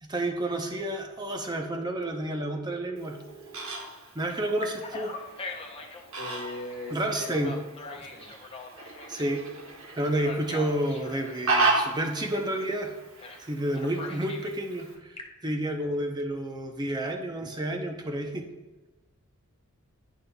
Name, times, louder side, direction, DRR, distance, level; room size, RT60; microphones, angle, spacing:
voice 1, 0.0-3.2 4.1-5.1 6.9-7.5 9.1-9.5 10.0-12.9 13.4-18.5, right 1 dB, 20° right, 4 dB, 0.6 m, -30 dB
Telephone, 1.5-3.8 4.3-6.1 7.0-9.3 10.1-11.4 13.2-13.4 13.7-14.5 15.0-15.5, left 3 dB, 25° left, 0.6 m, -43 dB
Fowl, 3.0-15.0, right 3 dB, 65° right, 1.2 m, -34 dB
voice 2, 6.2-7.4 7.8-8.4, left 2 dB, 45° left, -1 dB, 1.4 m, -39 dB
10.5 x 5.4 x 2.3 m, 1.1 s
head